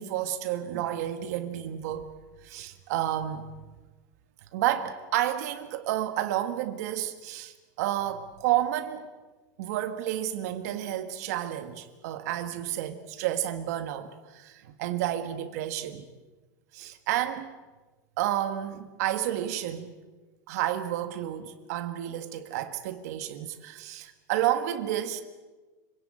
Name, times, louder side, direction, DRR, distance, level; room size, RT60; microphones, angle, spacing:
voice 1, 0.0-2.1 2.4-3.5 4.5-9.1 9.6-16.1 16.7-17.5 18.2-19.9 20.5-25.2, right 12 dB, 65° right, 1.6 m, -30 dB
26.0 x 17.5 x 8.9 m
supercardioid pair, 150°, 9 cm